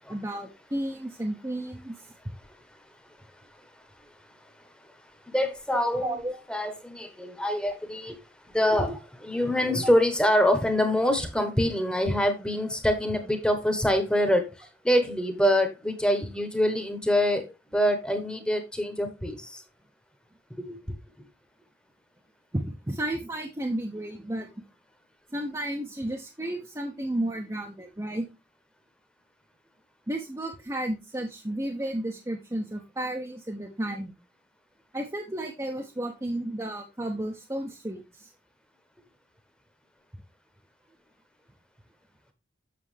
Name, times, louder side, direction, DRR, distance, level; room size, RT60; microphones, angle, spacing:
voice 1, 0.1-1.9 5.7-6.4 12.1-12.2 22.5-24.5 25.3-28.3 30.1-34.1 34.9-38.3, right 1 dB, 15° right, 0.7 m, -32 dB
voice 2, 5.3-6.2 6.5-8.1 8.5-9.0 9.2-14.4 14.8-17.4 17.7-19.4 20.7-20.8, equal, 5° left, 1.0 m, -25 dB
7.6 x 6.8 x 3.3 m
head